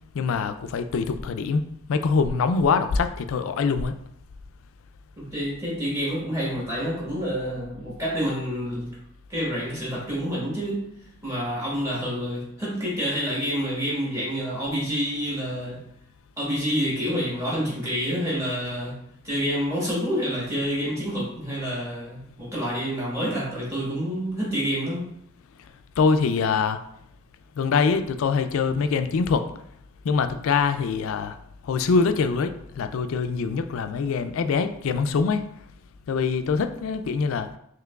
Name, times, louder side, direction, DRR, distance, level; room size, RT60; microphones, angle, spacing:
voice 1, 0.1-1.6 1.9-3.9 26.0-26.8 27.6-29.4 30.0-31.4 31.6-35.4 36.1-37.5, left 5 dB, 75° left, 9 dB, 0.3 m, -24 dB
voice 2, 5.2-8.9 9.3-10.9 11.2-15.8 16.4-19.0 19.2-25.1, equal, 15° right, -6 dB, 1.4 m, -28 dB
5.8 x 3.0 x 2.3 m, 0.73 s
head